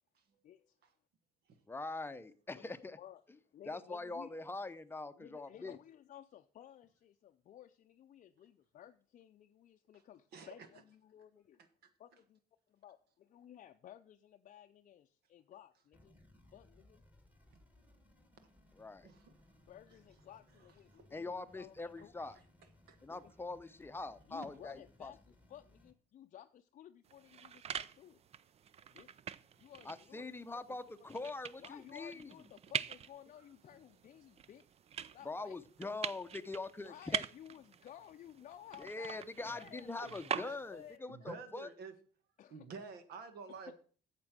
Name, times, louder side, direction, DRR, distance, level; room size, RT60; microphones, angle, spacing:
voice 1, 0.4-0.8 2.5-2.7 3.0-3.2 3.5-4.3 5.2-11.6 12.0-12.4 12.7-16.2 16.5-17.0 19.6-22.1 23.1-23.3 24.3-28.2 28.9-29.1 29.6-30.2 30.5-31.3 31.6-34.6 35.1-35.6 36.8-41.4 42.4-42.7 43.5-43.7, left 11 dB, 50° left, 0.5 m, -56 dB
voice 2, 1.7-3.0 3.7-5.8 18.8-19.1 21.1-22.3 23.0-25.1 29.8-32.3 35.2-37.2 38.8-41.7, left 3 dB, 15° left, 0.7 m, -43 dB
sound 1, 15.9-25.9, left 1 dB, 10° right, 1.9 m, -66 dB
voice 3, 19.0-19.3 20.9-21.1 22.2-22.3 22.9-23.0 28.8-28.9 39.4-39.5 40.0-40.6 41.1-41.9 42.5-43.8, right 5 dB, 70° right, 1.5 m, -49 dB
sound 2, 27.0-41.0, right 8 dB, 40° right, 0.4 m, -45 dB
8.6 x 7.4 x 6.1 m
cardioid pair, 110°, 17 cm